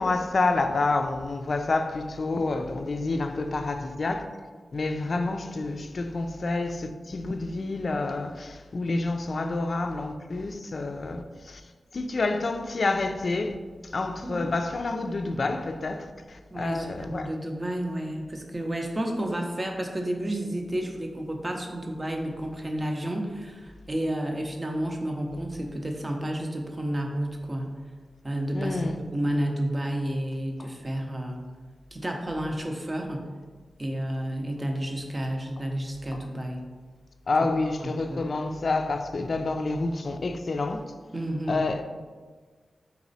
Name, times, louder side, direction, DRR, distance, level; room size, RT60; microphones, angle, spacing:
voice 1, 0.0-4.3 4.7-11.6 11.9-13.6 13.8-17.3 28.5-29.0 30.6-30.7 36.1-36.2 37.3-40.8 41.5-41.8, left 3 dB, 55° left, 0.3 m, -28 dB
voice 2, 16.5-27.7 28.2-28.8 29.1-31.4 31.9-33.3 33.8-36.6 37.4-37.5 37.8-38.2 41.1-41.7, right 1 dB, 30° right, 0.6 m, -31 dB
4.1 x 3.0 x 4.0 m
cardioid pair, 60°, 0 cm